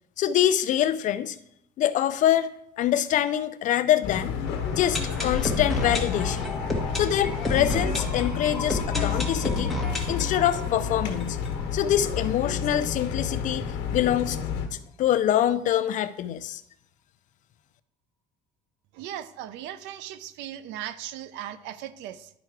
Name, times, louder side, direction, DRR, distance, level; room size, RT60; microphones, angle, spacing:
voice 1, 0.2-1.4 1.8-4.3 4.8-6.5 6.9-9.7 10.1-11.4 11.7-14.4 14.7-16.6, left 11 dB, 45° left, 13 dB, 0.4 m, -25 dB
sound 1, 4.0-14.7, left 7 dB, 80° left, 1.2 m, -31 dB
sound 2, 4.5-12.2 12.5-12.6 12.8-12.9 13.4-13.5, left 2 dB, ahead, 1.3 m, -31 dB
voice 2, 18.9-22.3, right 11 dB, 80° right, 14 dB, 0.6 m, -38 dB
11.0 x 4.6 x 4.7 m, 0.80 s
cardioid pair, 150°, 18 cm